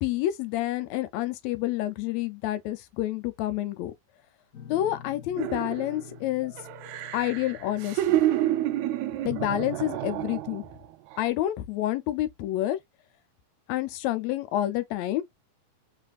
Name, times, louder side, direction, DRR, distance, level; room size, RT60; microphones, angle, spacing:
voice 1, 0.0-3.9 4.7-6.5 7.1-8.2 9.2-10.6 11.2-12.8 13.7-15.2, left 14 dB, 75° left, 1.8 m, -28 dB
Guitar, 4.5-9.8, left 8 dB, 60° left, 0.8 m, -49 dB
sound 1, 5.4-6.2 6.6-10.7 11.1-11.3, right 14 dB, 80° right, 1.8 m, -29 dB
5.1 x 3.2 x 2.4 m
omnidirectional pair, 3.4 m